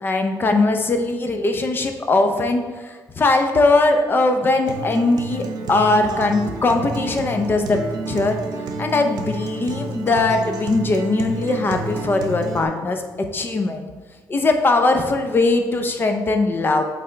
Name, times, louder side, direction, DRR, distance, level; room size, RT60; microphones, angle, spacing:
voice 1, 0.0-2.6 3.2-8.4 8.8-13.8 14.3-16.8, left 2 dB, 30° left, 5 dB, 0.6 m, -20 dB
Acoustic guitar, 4.7-12.6, right 2 dB, 60° right, 0.7 m, -30 dB
8.3 x 3.3 x 3.8 m, 1.4 s
cardioid pair, 135°, 7 cm